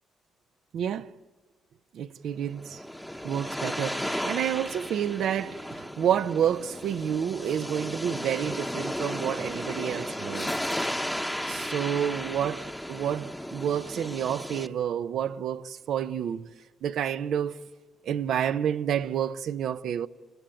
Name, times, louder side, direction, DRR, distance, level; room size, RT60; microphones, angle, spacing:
voice 1, 0.7-1.1 1.9-2.8 3.2-10.5 11.5-12.6 12.9-16.5 16.8-17.6 18.0-20.1, right 9 dB, 70° right, 0.7 m, -29 dB
sound 1, 2.4-14.7, equal, ahead, 0.9 m, -34 dB
sound 2, 8.3-8.9 9.3-9.4 10.3-11.0 14.1-14.5, left 7 dB, 55° left, 0.7 m, -48 dB
30.0 x 19.5 x 8.9 m
cardioid pair, 90°, 0 cm